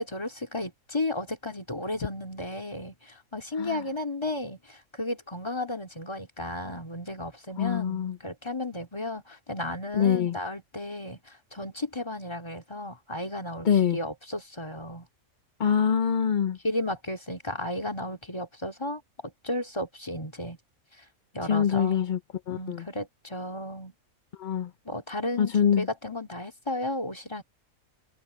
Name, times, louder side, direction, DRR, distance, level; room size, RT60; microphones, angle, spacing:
voice 1, 0.0-13.7 13.9-15.1 16.6-19.0 19.4-20.6 21.0-21.1 21.3-22.0 22.5-23.9 24.8-27.4, left 1 dB, 20° left, 2.6 m, -34 dB
voice 2, 7.6-8.2 9.9-10.4 13.6-14.0 15.6-16.6 21.4-22.2 22.5-22.8 24.4-24.7 25.4-25.9, left 8 dB, 45° left, 0.7 m, -24 dB
omnidirectional pair, 1.5 m